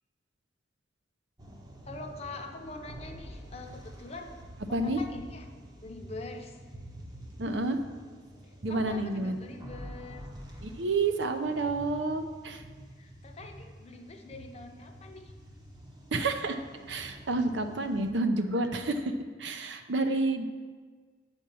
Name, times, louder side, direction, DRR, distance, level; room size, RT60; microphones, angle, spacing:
sound 1, 1.4-18.1, equal, 20° right, 0.8 m, -47 dB
voice 1, 1.9-4.4 4.7-5.5 5.8-6.6 8.7-10.3 13.0-15.3 20.1-20.2, left 3 dB, 35° left, 4 dB, 0.7 m, -44 dB
voice 2, 7.4-7.8 8.6-9.4 10.6-12.6 16.1-16.6 16.9-19.1 19.4-20.5, right 2 dB, 75° right, 7 dB, 0.7 m, -29 dB
8.5 x 4.5 x 6.9 m, 1.5 s
head